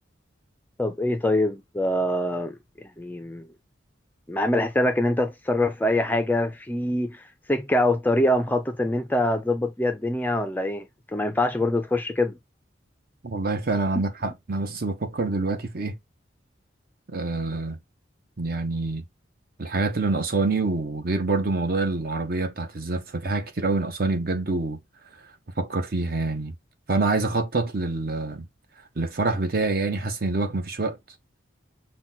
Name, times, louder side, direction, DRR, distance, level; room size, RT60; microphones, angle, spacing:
voice 1, 0.8-2.6 3.0-3.5 4.3-12.4 14.0-14.1, left 1 dB, 10° left, 0.3 m, -24 dB
voice 2, 13.2-15.9 17.1-17.8 18.4-19.0 19.6-24.8 25.6-26.5 26.9-28.5 29.0-31.0, right 3 dB, 50° right, 0.7 m, -26 dB
5.8 x 2.2 x 3.9 m
head